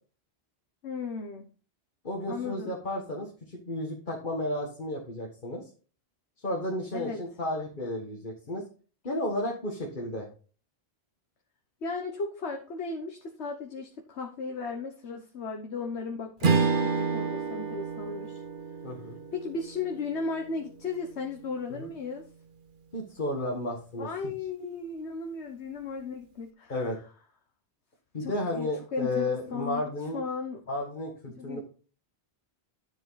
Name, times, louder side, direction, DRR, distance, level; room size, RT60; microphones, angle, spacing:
voice 1, 0.8-1.5 2.3-2.8 6.9-7.2 11.8-18.4 19.3-22.2 24.0-26.9 28.2-30.6 31.4-31.6, left 4 dB, 85° left, 4 dB, 1.4 m, -36 dB
voice 2, 2.0-5.6 6.4-8.6 9.0-10.3 18.8-19.2 21.7-21.9 22.9-24.3 26.7-27.0 28.1-30.2 30.7-31.6, left 1 dB, 50° left, -1 dB, 1.9 m, -33 dB
Strum, 16.4-21.0, right 5 dB, 55° right, 1.0 m, -30 dB
10.0 x 7.6 x 4.0 m, 0.38 s
omnidirectional pair, 1.1 m